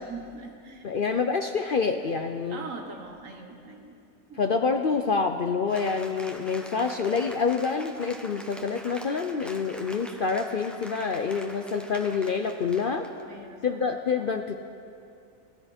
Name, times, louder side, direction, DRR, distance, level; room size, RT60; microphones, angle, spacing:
voice 1, 0.0-0.8 2.5-3.9 4.3-4.4 13.3-13.8, right 3 dB, 65° right, 3 dB, 1.7 m, -41 dB
voice 2, 0.8-2.7 4.4-13.0 13.6-14.6, left 5 dB, 55° left, 6 dB, 0.6 m, -27 dB
Cheering / Applause, 5.7-13.2, equal, ahead, 0.6 m, -44 dB
28.5 x 10.5 x 4.3 m, 2.4 s
omnidirectional pair, 1.5 m